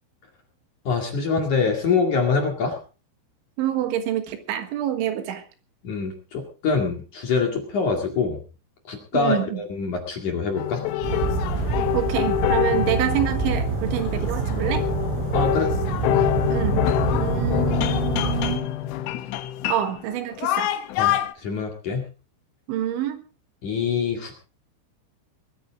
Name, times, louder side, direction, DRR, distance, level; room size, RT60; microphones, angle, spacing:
voice 1, 0.8-2.8 5.8-8.4 8.9-10.8 15.3-15.7 21.0-22.1 23.6-24.4, left 5 dB, 50° left, 2 dB, 3.0 m, -25 dB
voice 2, 3.6-5.4 9.1-9.6 11.9-14.8 16.5-16.9 17.1-18.7 19.7-20.7 22.7-23.2, right 11 dB, 75° right, 8 dB, 3.8 m, -27 dB
sound 1, 10.6-21.3, left 13 dB, 80° left, 3.3 m, -26 dB
sound 2, 11.0-18.6, right 4 dB, 90° right, 8.2 m, -26 dB
21.0 x 14.0 x 3.7 m, 0.35 s
omnidirectional pair, 5.7 m